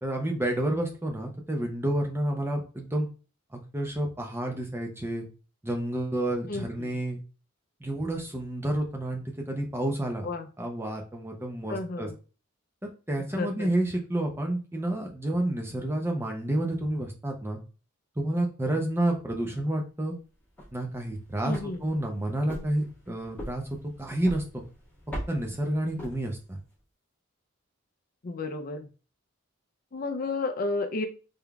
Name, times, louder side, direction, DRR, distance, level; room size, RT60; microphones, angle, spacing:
voice 1, 0.0-3.1 3.5-5.3 5.6-7.2 7.8-10.3 10.6-12.1 12.8-17.6 18.2-20.2 20.7-24.6 25.3-26.6, right 1 dB, 10° right, 2 dB, 0.5 m, -30 dB
voice 2, 6.5-6.9 10.2-10.5 11.7-12.2 13.2-13.7 21.4-21.8 28.2-28.9 29.9-31.1, left 3 dB, 40° left, 6 dB, 0.4 m, -32 dB
sound 1, 20.4-26.7, equal, 5° left, 1.6 m, -43 dB
3.6 x 3.4 x 2.3 m, 0.35 s
head